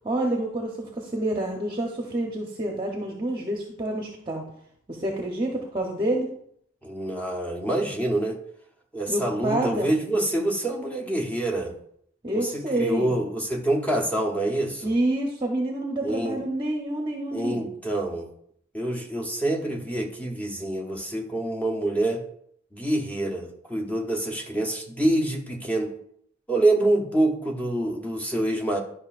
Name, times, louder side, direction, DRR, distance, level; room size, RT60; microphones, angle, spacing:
voice 1, 0.0-4.5 4.9-6.3 9.1-9.9 12.2-13.2 14.8-17.7, right 1 dB, 25° right, 0 dB, 0.8 m, -28 dB
voice 2, 6.8-8.4 8.9-11.7 12.3-14.9 16.0-16.4 17.3-18.3 18.7-22.2 22.7-25.9 26.5-28.8, right 1 dB, 10° left, 1 dB, 0.9 m, -26 dB
11.0 x 5.5 x 2.5 m, 0.68 s
head